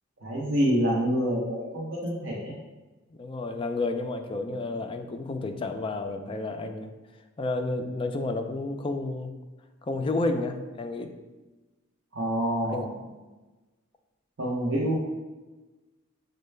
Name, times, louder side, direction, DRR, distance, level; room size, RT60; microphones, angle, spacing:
voice 1, 0.2-2.5 12.1-13.0 14.4-15.0, equal, 60° right, -4 dB, 0.7 m, -27 dB
voice 2, 3.1-6.9 7.4-9.3 9.8-11.1 12.7-12.9, left 2 dB, 25° left, 6 dB, 0.3 m, -31 dB
6.3 x 2.2 x 3.2 m, 1.2 s
head